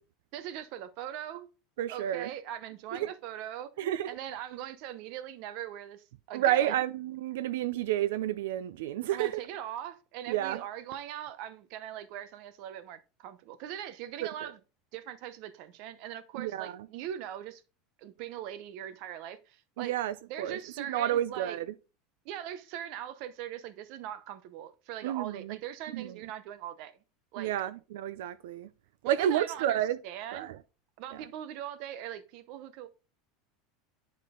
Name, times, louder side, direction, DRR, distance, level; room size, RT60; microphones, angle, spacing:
voice 1, 0.3-1.5 1.9-3.7 4.1-6.8 9.1-14.6 14.9-17.6 18.0-20.0 20.3-21.6 22.2-27.0 27.3-27.5 29.0-30.5 31.0-32.9, right 11 dB, 45° right, 0.6 m, -41 dB
voice 2, 1.8-2.3 2.9-3.1 3.8-4.1 6.3-9.3 10.3-10.6 16.4-16.7 19.8-21.7 25.0-25.6 25.9-26.1 27.4-28.7 29.1-30.0 30.3-30.6 31.1-31.2, right 12 dB, 85° right, 0.4 m, -30 dB
9.9 x 3.7 x 3.7 m
supercardioid pair, 180°, 0 cm